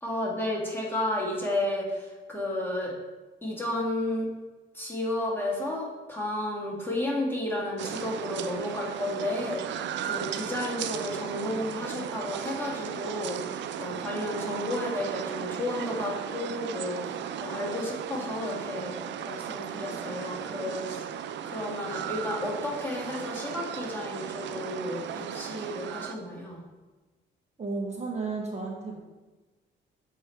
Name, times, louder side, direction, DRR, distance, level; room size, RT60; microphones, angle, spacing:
voice 1, 0.0-2.9 3.4-4.3 4.7-19.0 19.3-26.6, left 1 dB, 10° left, -3 dB, 1.6 m, -32 dB
sound 1, 7.8-26.1, right 9 dB, 65° right, 0.4 m, -36 dB
voice 2, 27.6-29.0, right 3 dB, 35° right, 0 dB, 0.9 m, -33 dB
6.9 x 3.3 x 4.4 m, 1.2 s
cardioid pair, 90°, 20 cm